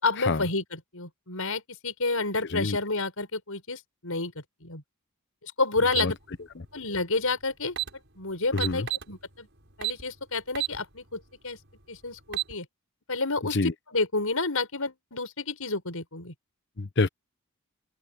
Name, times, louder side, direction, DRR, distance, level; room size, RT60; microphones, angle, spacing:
voice 1, 0.0-4.3 4.6-4.8 5.4-6.2 6.7-7.8 8.2-9.5 9.8-11.6 11.9-12.7 13.1-16.3, left 3 dB, 70° left, 6.1 m, -30 dB
sound 1, 5.9-6.1 7.3-7.4 7.7-7.9 8.6-9.1 9.8-10.0 10.5-10.8 11.2-11.3 12.1-12.5, right 13 dB, 55° right, 6.6 m, -29 dB
voice 2, 8.5-8.9 13.5-13.7 16.8-17.1, left 3 dB, 55° left, 0.9 m, -26 dB
open air
head